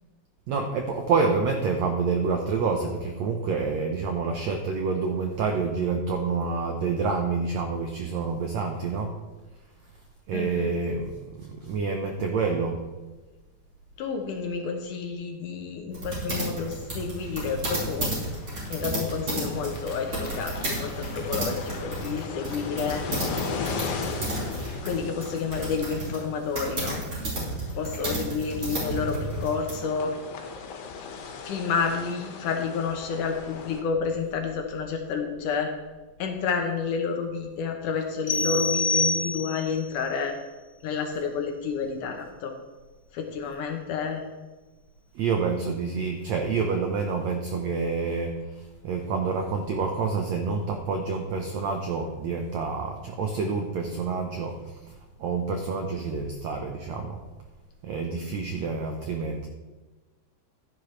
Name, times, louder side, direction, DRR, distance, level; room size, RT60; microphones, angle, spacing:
voice 1, 0.5-9.1 10.3-12.8 45.1-57.2 57.8-59.5, right 4 dB, 80° right, 3 dB, 1.6 m, -28 dB
voice 2, 10.3-10.7 14.0-18.1 18.7-23.1 24.8-27.0 27.8-30.1 31.4-35.7 36.2-40.4 40.8-42.5 43.1-44.2, left 5 dB, 70° left, 4 dB, 2.2 m, -30 dB
sound 1, 15.9-29.8, right 1 dB, 35° right, 5.0 m, -32 dB
sound 2, 16.8-33.8, left 5 dB, 85° left, 3.2 m, -38 dB
sound 3, 38.3-39.8, left 2 dB, 25° left, 1.5 m, -26 dB
13.0 x 11.0 x 3.2 m, 1.2 s
omnidirectional pair, 4.3 m